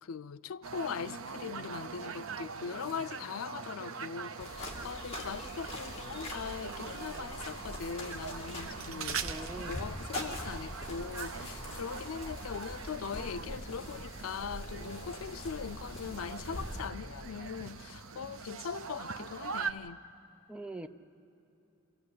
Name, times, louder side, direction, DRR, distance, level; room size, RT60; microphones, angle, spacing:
voice 1, 0.0-20.0, left 6 dB, 90° left, 0.5 m, -41 dB
sound 1, 0.6-19.7, right 5 dB, 80° right, 0.8 m, -42 dB
sound 2, 4.4-16.9, left 1 dB, 30° left, 2.5 m, -43 dB
voice 2, 9.2-9.8 20.5-20.9, right 2 dB, 5° right, 0.5 m, -42 dB
25.5 x 16.0 x 8.2 m
head